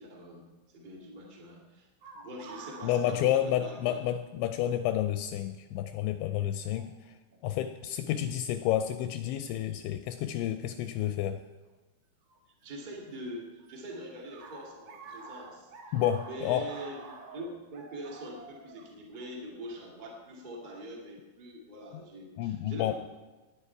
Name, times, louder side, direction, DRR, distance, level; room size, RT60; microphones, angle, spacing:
voice 1, 0.0-4.0 6.6-6.8 8.2-8.4 12.6-15.7 16.2-22.9, right 1 dB, 45° right, -2 dB, 0.6 m, -44 dB
sound 1, 2.0-4.1 4.4-4.5 5.4-5.7 6.7-6.9 7.7-8.2 10.8-10.9 12.3-13.1 13.4-20.0, right 4 dB, 65° right, 2.3 m, -49 dB
voice 2, 2.8-7.1 7.4-11.4 15.9-16.7 22.4-22.9, left 11 dB, 85° left, 9 dB, 2.7 m, -30 dB
18.5 x 10.0 x 4.7 m, 1.2 s
omnidirectional pair, 5.6 m